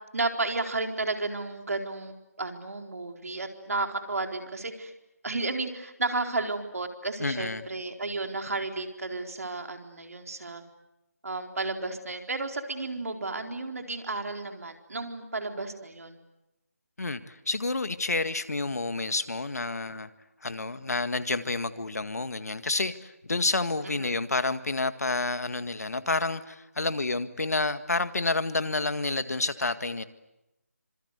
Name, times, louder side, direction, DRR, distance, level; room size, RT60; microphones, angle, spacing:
voice 1, 0.1-4.9 5.2-10.6 11.2-16.2 23.8-24.2, right 3 dB, 70° right, 4 dB, 4.3 m, -33 dB
voice 2, 7.2-7.6 17.0-20.1 20.4-30.0, left 3 dB, 75° left, 11 dB, 1.9 m, -29 dB
26.5 x 25.0 x 8.2 m, 0.94 s
figure-of-eight pair, 170°, 8 cm